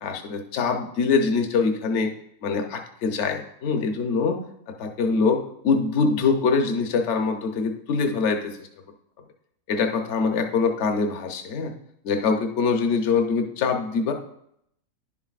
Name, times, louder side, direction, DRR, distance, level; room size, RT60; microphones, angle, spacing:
voice 1, 0.0-2.1 2.4-4.4 4.8-8.6 9.7-11.7 12.0-14.1, left 4 dB, 55° left, 4 dB, 1.0 m, -24 dB
10.5 x 7.3 x 2.4 m, 0.74 s
omnidirectional pair, 1.6 m